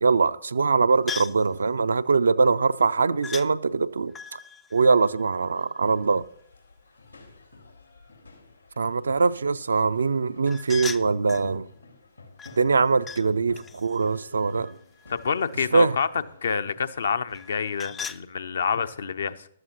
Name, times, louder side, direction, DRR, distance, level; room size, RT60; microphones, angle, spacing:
voice 1, 0.0-4.4 4.7-6.2 8.8-11.7 12.6-14.8 15.7-16.0, right 4 dB, 65° right, 0.4 m, -22 dB
sound 1, 1.1-1.5 3.2-3.5 4.1-5.9 10.5-11.5 12.4-13.3 13.6-15.5 17.3-18.2, left 7 dB, 15° left, 0.3 m, -39 dB
sound 2, 5.8-17.9, left 3 dB, 85° left, 3.6 m, -51 dB
voice 2, 15.1-16.1 16.4-19.5, left 6 dB, 60° left, 0.7 m, -27 dB
14.5 x 12.5 x 2.9 m
figure-of-eight pair, 120°, 0 cm